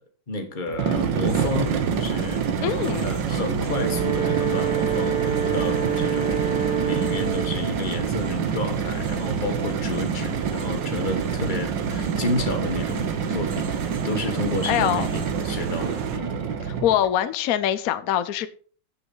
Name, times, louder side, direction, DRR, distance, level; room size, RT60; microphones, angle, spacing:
voice 1, 0.3-2.4 3.0-6.5 6.8-13.7 14.0-16.4, left 2 dB, 30° left, 1.7 m, -31 dB
sound 1, 0.7-17.1, right 6 dB, 90° right, 1.9 m, -27 dB
sound 2, 1.3-16.2, right 7 dB, 55° right, 1.3 m, -35 dB
voice 2, 2.6-3.1 14.7-15.1 16.6-18.5, left 11 dB, 65° left, 1.1 m, -23 dB
Wind instrument woodwind instrument, 3.5-7.7, right 7 dB, 35° right, 1.6 m, -27 dB
8.6 x 7.1 x 5.5 m
omnidirectional pair, 1.9 m